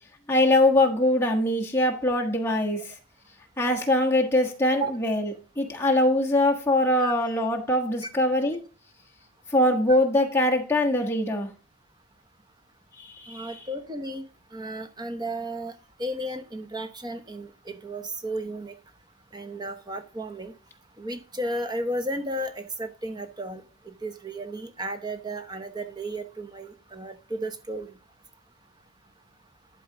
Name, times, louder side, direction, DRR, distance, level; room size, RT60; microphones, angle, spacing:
voice 1, 0.3-2.9 3.6-5.3 5.6-8.6 9.5-11.5 13.0-13.5, left 1 dB, 10° left, -1 dB, 1.4 m, -22 dB
voice 2, 13.3-14.2 14.5-15.7 16.0-18.7 19.3-20.5 21.0-27.9, right 1 dB, 20° right, 7 dB, 0.9 m, -34 dB
11.5 x 4.2 x 4.9 m, 0.37 s
head